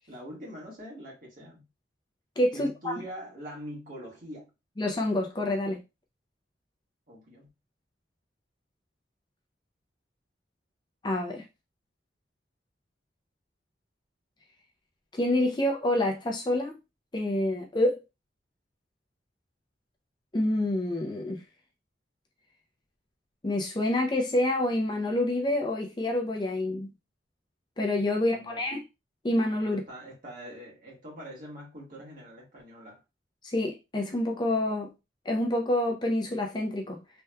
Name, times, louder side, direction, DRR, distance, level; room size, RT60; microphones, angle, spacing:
voice 1, 0.1-1.7 2.5-4.5 7.1-7.5 28.2-28.6 29.6-33.0, equal, 50° right, 1.7 m, -43 dB
voice 2, 2.4-3.0 4.8-5.8 11.0-11.4 15.2-16.7 17.1-18.0 20.3-21.4 23.4-26.9 27.8-28.8 29.2-29.8 33.4-34.9 35.3-37.0, left 1 dB, 25° left, 0.5 m, -27 dB
3.4 x 3.0 x 2.2 m
head